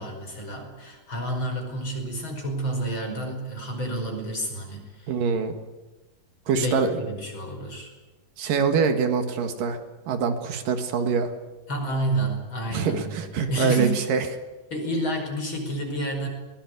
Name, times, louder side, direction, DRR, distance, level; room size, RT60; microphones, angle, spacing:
voice 1, 0.0-5.1 6.5-7.9 11.7-14.0 14.7-16.3, right 1 dB, 35° left, 3 dB, 5.8 m, -29 dB
voice 2, 5.1-5.5 6.5-7.0 8.4-9.8 10.1-11.3 12.7-14.3, right 5 dB, 75° right, 7 dB, 3.3 m, -24 dB
22.0 x 20.0 x 9.6 m, 1.1 s
omnidirectional pair, 4.0 m